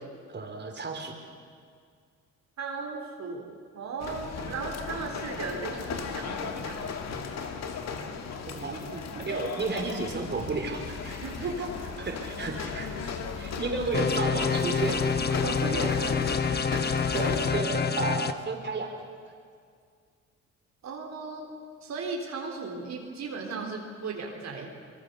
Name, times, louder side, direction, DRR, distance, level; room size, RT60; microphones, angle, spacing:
voice 1, 0.3-1.1 8.5-11.3 12.0-15.3 16.5-18.9, right 3 dB, 35° right, 2 dB, 4.0 m, -33 dB
voice 2, 2.6-7.0 11.2-12.0 15.3-16.2 16.6-16.7 20.8-21.5 21.8-24.7, right 4 dB, 65° right, 1 dB, 3.7 m, -36 dB
sound 1, 4.0-17.6, left 5 dB, 60° left, 2.2 m, -36 dB
sound 2, 13.9-18.3, left 6 dB, 35° left, 1.2 m, -27 dB
24.5 x 22.0 x 6.9 m, 2.1 s
cardioid pair, 90°, 30 cm